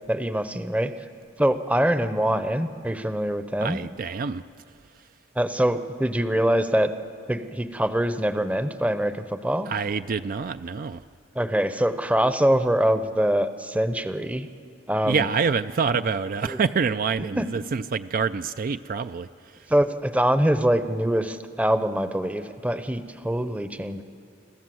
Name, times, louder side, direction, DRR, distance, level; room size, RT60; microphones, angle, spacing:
voice 1, 0.1-0.9 1.4-3.8 5.4-6.9 7.3-9.7 11.3-14.5 14.9-15.3 16.5-16.6 17.4-17.5 19.7-24.0, right 1 dB, 10° right, 10 dB, 0.7 m, -24 dB
voice 2, 3.6-4.4 9.7-11.0 15.0-19.3, right 5 dB, 50° right, 11 dB, 0.4 m, -26 dB
27.0 x 13.5 x 7.7 m, 2.5 s
head